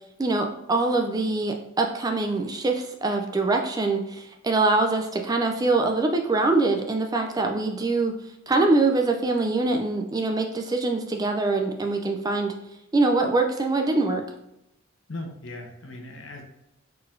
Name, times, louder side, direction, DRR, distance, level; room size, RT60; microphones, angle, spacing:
voice 1, 0.2-8.1 8.5-12.6 12.9-14.2, right 3 dB, 20° right, 3 dB, 0.3 m, -24 dB
voice 2, 15.1-16.4, left 2 dB, 65° left, 2 dB, 0.9 m, -38 dB
4.3 x 3.9 x 2.6 m, 0.87 s
head